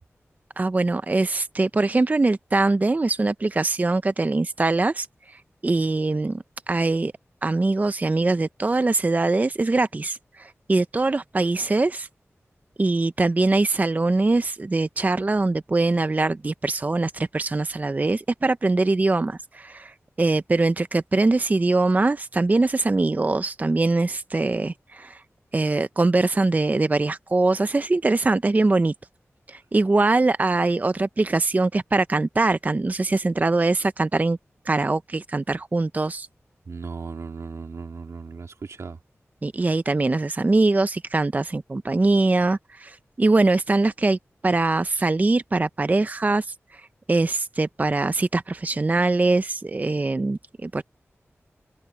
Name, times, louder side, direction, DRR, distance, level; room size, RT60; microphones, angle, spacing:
voice 1, 0.6-7.1 7.4-12.1 12.8-25.2 25.5-28.9 29.5-34.4 34.7-36.3 39.4-50.8, right 3 dB, 35° right, 0.5 m, -22 dB
voice 2, 36.7-39.0, right 4 dB, 80° right, 2.1 m, -36 dB
wide cardioid pair, 80°, 5 cm